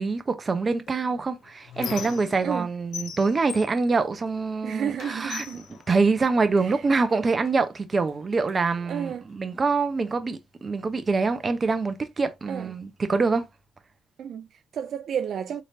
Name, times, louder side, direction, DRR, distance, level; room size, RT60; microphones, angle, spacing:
voice 1, 0.0-5.4 5.9-13.4, right 4 dB, 35° right, 0.8 m, -25 dB
Squeak, 0.9-2.6 2.9-4.6 5.0-6.7 7.5-7.6 7.9-8.9, left 8 dB, 70° left, 0.7 m, -40 dB
voice 2, 4.6-5.7 6.6-6.8 8.8-9.3 12.5-12.7 14.2-15.6, right 8 dB, 65° right, 0.4 m, -32 dB
3.8 x 3.3 x 2.8 m
cardioid pair, 90°, 0 cm